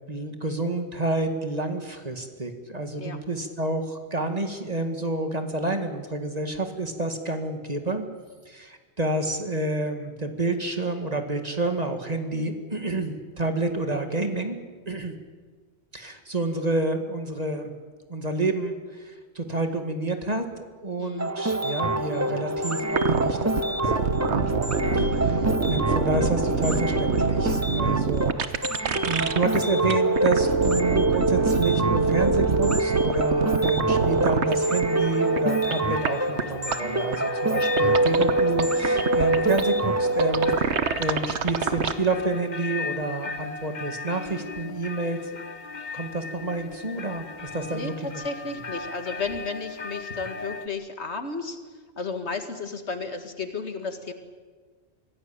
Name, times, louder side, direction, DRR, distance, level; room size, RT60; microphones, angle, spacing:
voice 1, 0.1-8.1 8.5-14.6 14.9-15.1 15.9-17.7 18.1-24.5 24.9-28.4 29.0-40.7 41.0-45.2 45.9-48.2, right 2 dB, 35° right, 6 dB, 2.2 m, -29 dB
sound 1, 21.2-40.6, right 2 dB, 15° right, 0.9 m, -25 dB
sound 2, 22.9-29.6 29.9-34.6 34.8-34.9 35.4-35.5 35.7-35.8 36.0-36.1 36.4-36.5 36.7-36.8 37.1-37.2 37.8-39.6 40.2-41.9, right 6 dB, 75° right, 1.4 m, -26 dB
sound 3, 34.9-50.7, left 4 dB, 45° left, 1.1 m, -37 dB
voice 2, 47.7-51.6 52.0-54.1, left 4 dB, 75° left, 7 dB, 2.2 m, -33 dB
24.5 x 17.0 x 8.8 m, 1.5 s
omnidirectional pair, 1.1 m